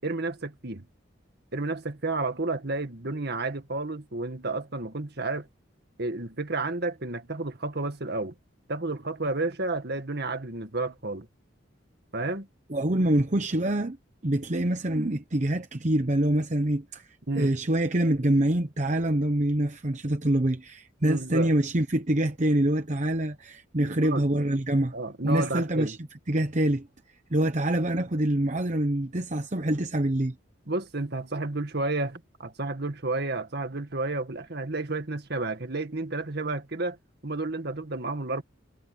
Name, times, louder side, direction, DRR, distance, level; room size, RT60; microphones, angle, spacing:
voice 1, 0.0-0.9 1.5-5.5 6.0-8.3 8.7-11.3 12.1-12.5 17.3-17.6 21.0-21.5 23.8-24.3 24.9-26.0 30.7-37.0 37.2-38.4, right 2 dB, 55° right, 1.9 m, -31 dB
voice 2, 12.7-14.0 14.2-17.1 17.4-24.9 25.2-26.0 26.3-26.9 27.3-30.3, right 1 dB, 40° right, 1.0 m, -25 dB
head